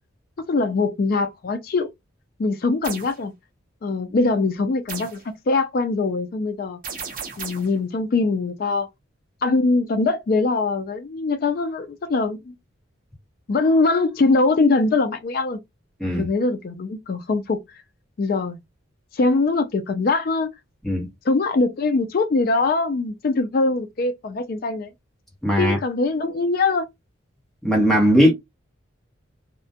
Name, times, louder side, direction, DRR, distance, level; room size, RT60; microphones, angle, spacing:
voice 1, 0.5-1.9 2.4-3.3 3.8-6.8 7.4-8.9 9.4-12.5 13.5-15.6 16.1-17.8 18.2-18.6 19.1-20.5 21.2-24.9 25.6-26.9, left 3 dB, 45° left, 0.3 m, -22 dB
sound 1, 2.8-3.2 4.9-5.3 6.8-7.8, right 5 dB, 40° right, 0.7 m, -34 dB
voice 2, 25.4-25.8 27.6-28.3, equal, ahead, 0.9 m, -18 dB
2.3 x 2.1 x 2.7 m
head